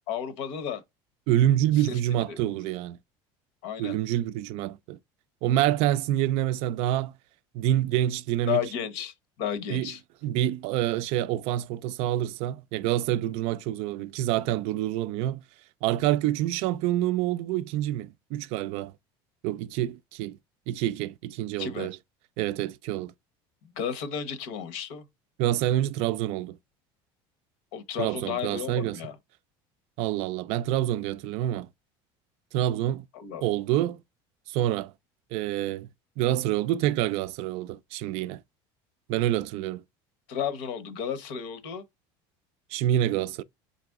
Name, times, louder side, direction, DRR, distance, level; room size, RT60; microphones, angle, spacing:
voice 1, 0.1-0.8 1.8-2.0 2.3-2.4 3.6-4.0 8.5-10.0 21.6-21.9 23.8-25.1 27.7-29.2 33.1-33.4 40.3-41.8, left 8 dB, 70° left, 0.9 m, -33 dB
voice 2, 1.3-3.0 3.8-5.0 5.4-7.1 7.5-8.6 9.7-9.9 10.2-15.4 15.8-18.9 19.4-20.4 20.7-22.0 22.4-23.1 25.4-26.6 28.0-29.0 30.0-31.7 32.5-33.0 33.4-34.0 34.5-34.9 35.3-35.9 36.2-38.4 39.1-39.8 42.7-43.4, right 13 dB, 60° right, 0.4 m, -27 dB
4.2 x 2.8 x 3.5 m
cardioid pair, 150°, 12 cm